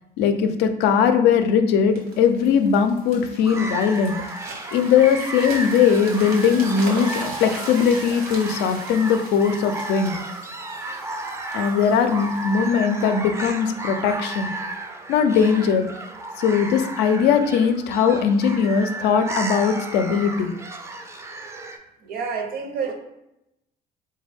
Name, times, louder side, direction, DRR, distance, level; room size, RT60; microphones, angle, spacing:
voice 1, 0.2-4.2 4.7-10.2 11.5-14.5 15.1-15.9 16.4-20.5, left 6 dB, 85° left, 8 dB, 0.4 m, -20 dB
sound 1, 2.0-13.8 14.4-14.6, right 2 dB, 80° right, 1.1 m, -39 dB
sound 2, 3.4-21.8, right 2 dB, 15° right, 0.3 m, -33 dB
voice 2, 22.0-22.9, right 5 dB, 60° right, 4 dB, 0.6 m, -28 dB
3.5 x 2.2 x 3.4 m, 0.85 s
cardioid pair, 110°, 17 cm